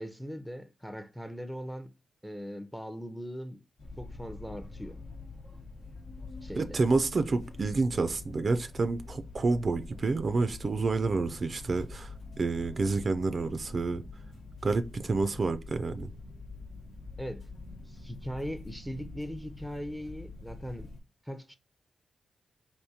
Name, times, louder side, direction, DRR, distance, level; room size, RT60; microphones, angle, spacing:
voice 1, 0.0-1.9 2.2-3.6 4.0-5.0 6.4-6.8 17.2-17.4 17.9-20.9 21.2-21.5, equal, ahead, 0.5 m, -40 dB
sound 1, 3.8-21.0, left 3 dB, 70° left, 1.0 m, -45 dB
voice 2, 6.6-14.0 14.6-16.1, right 3 dB, 50° right, 0.3 m, -29 dB
3.5 x 2.6 x 2.8 m
cardioid pair, 55°, 0 cm